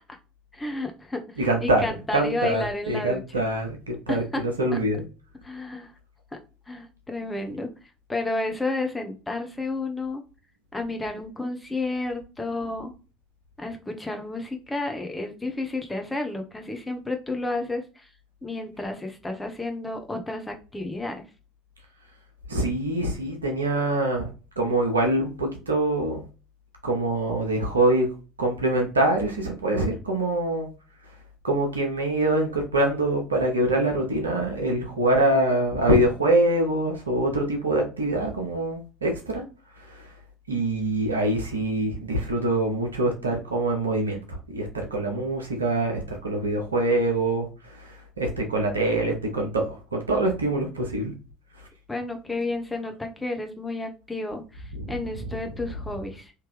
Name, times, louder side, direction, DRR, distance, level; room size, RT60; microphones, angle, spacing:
voice 1, 0.5-3.4 4.1-4.4 4.7-4.8 5.4-5.9 6.3-6.4 6.7-7.7 8.1-10.2 10.7-12.9 13.6-18.1 18.4-21.2 51.9-56.3, left 2 dB, 10° left, 4 dB, 0.9 m, -31 dB
voice 2, 1.4-1.8 2.1-5.0 22.5-24.3 24.6-26.2 26.8-28.1 28.4-30.7 31.4-39.4 39.8-40.1 40.5-51.1 54.7-54.9, right 1 dB, 85° right, 2 dB, 0.9 m, -24 dB
3.4 x 2.9 x 3.3 m, 0.33 s
figure-of-eight pair, 65°, 0 cm